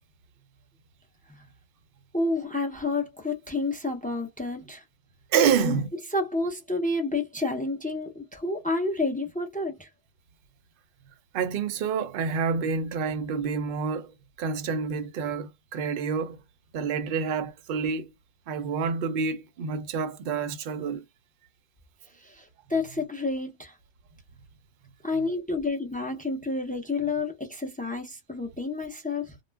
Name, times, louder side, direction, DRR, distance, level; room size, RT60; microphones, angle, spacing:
voice 1, 2.1-4.8 5.5-5.8 6.1-9.9 22.2-23.8 25.0-29.3, left 3 dB, 15° left, 0.3 m, -30 dB
voice 2, 5.3-5.9 11.3-16.4 16.7-18.1 18.5-21.0, right 6 dB, 60° right, 0.7 m, -28 dB
2.3 x 2.1 x 3.2 m
omnidirectional pair, 1.2 m